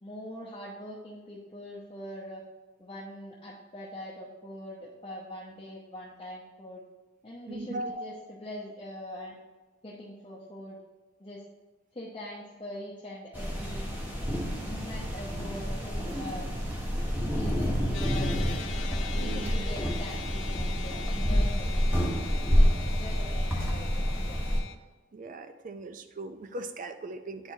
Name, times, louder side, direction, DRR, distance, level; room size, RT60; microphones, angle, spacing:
voice 1, 0.0-2.4 2.8-6.8 7.2-8.1 8.4-9.4 9.8-10.8 11.2-11.4 11.9-13.9 14.6-16.5 17.2-18.8 19.2-24.4, left 1 dB, 25° left, -5 dB, 0.7 m, -43 dB
voice 2, 7.5-8.2 19.1-19.6 25.1-27.5, right 2 dB, 40° right, 9 dB, 0.4 m, -39 dB
sound 1, 13.3-24.6, equal, 10° right, 1.0 m, -28 dB
sound 2, 17.9-24.7, left 7 dB, 75° left, 0.4 m, -42 dB
8.6 x 4.5 x 2.7 m, 1.2 s
head